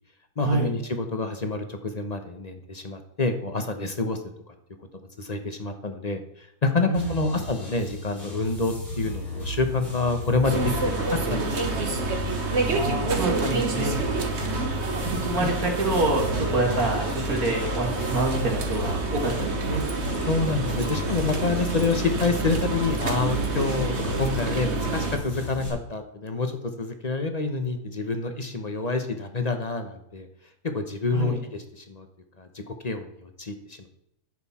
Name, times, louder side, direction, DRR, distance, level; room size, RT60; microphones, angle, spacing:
voice 1, 0.4-4.2 4.5-4.6 5.2-12.0 15.4-15.5 20.3-26.5 26.8-30.3 30.7-32.1 32.4-33.9, left 3 dB, 30° left, 7 dB, 0.9 m, -28 dB
sound 1, 6.9-25.7, equal, 75° left, 4.5 m, -35 dB
voice 2, 6.9-7.3 12.7-13.9 15.0-19.8 31.1-31.4, right 2 dB, 60° right, -1 dB, 2.3 m, -27 dB
sound 2, 10.4-25.2, right 3 dB, 45° right, 1.5 m, -28 dB
10.5 x 7.8 x 4.3 m, 0.77 s
omnidirectional pair, 1.8 m